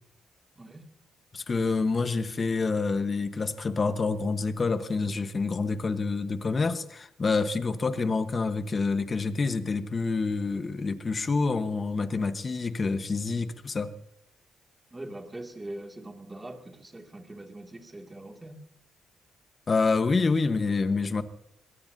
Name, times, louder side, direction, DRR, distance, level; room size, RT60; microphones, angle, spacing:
voice 1, 1.3-13.9 19.7-21.2, left 4 dB, 35° left, 1.2 m, -27 dB
voice 2, 14.9-18.6, right 1 dB, 15° right, 2.3 m, -42 dB
23.0 x 17.5 x 2.7 m
cardioid pair, 90°, 0 cm